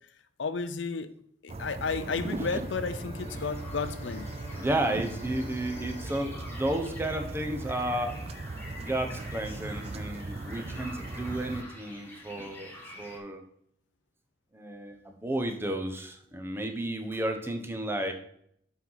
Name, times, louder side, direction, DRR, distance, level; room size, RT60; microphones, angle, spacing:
voice 1, 0.4-1.1 1.4-4.3, left 4 dB, 75° left, 12 dB, 0.6 m, -32 dB
sound 1, 1.5-11.6, right 2 dB, 35° right, 0.4 m, -38 dB
Bowed string instrument, 2.0-7.9, left 3 dB, 50° left, 1.2 m, -49 dB
sound 2, 3.2-13.2, left 1 dB, 10° left, 1.5 m, -47 dB
voice 2, 4.5-8.2 8.8-12.7 13.0-13.4 14.5-18.1, right 1 dB, 15° right, 4 dB, 0.9 m, -32 dB
7.3 x 5.7 x 4.0 m, 0.68 s
head